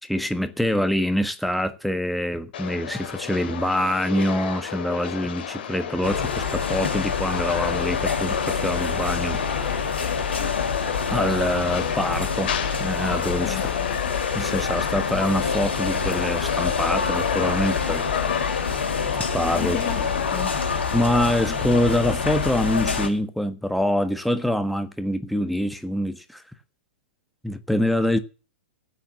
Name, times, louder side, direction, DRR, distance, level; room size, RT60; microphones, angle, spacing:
voice 1, 0.0-9.4 11.1-12.5 12.8-13.6 14.3-18.3 19.1-19.8 20.9-26.4 27.4-28.2, equal, ahead, 1.3 m, -25 dB
sound 1, 2.5-20.4, left 9 dB, 60° left, 3.1 m, -32 dB
sound 2, 6.0-23.1, left 5 dB, 75° left, 4.7 m, -26 dB
voice 2, 13.4-13.9 19.5-20.6 28.1-28.2, left 12 dB, 40° left, 1.6 m, -32 dB
14.5 x 8.9 x 7.1 m
figure-of-eight pair, 100°, 6 cm